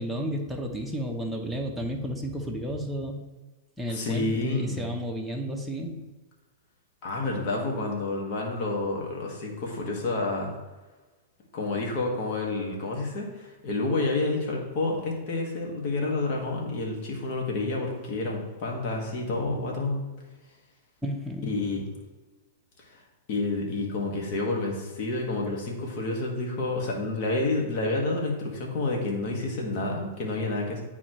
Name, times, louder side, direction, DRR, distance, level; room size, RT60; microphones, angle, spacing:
voice 1, 0.0-3.3 3.8-6.0 21.0-21.7, equal, ahead, -1 dB, 0.8 m, -32 dB
voice 2, 3.9-4.9 7.0-10.5 11.5-20.1 21.4-21.8 22.9-23.0 23.3-30.8, left 2 dB, 55° left, -1 dB, 1.7 m, -29 dB
9.6 x 4.2 x 3.1 m, 1.2 s
hypercardioid pair, 120°, 0 cm